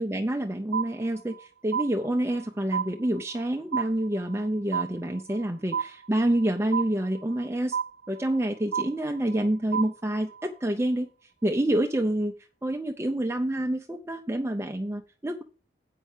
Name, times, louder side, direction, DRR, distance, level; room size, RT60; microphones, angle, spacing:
voice 1, 0.0-7.8 8.1-11.1 11.4-12.3 12.6-15.4, right 1 dB, 15° right, 3 dB, 0.5 m, -27 dB
sound 1, 0.7-1.4 1.7-2.5 2.7-3.5 3.7-4.5 4.7-5.5 5.7-6.5 6.7-7.5 7.7-8.5 8.7-9.5 9.7-10.5, right 7 dB, 70° right, 0.4 m, -31 dB
8.4 x 5.5 x 6.5 m, 0.38 s
head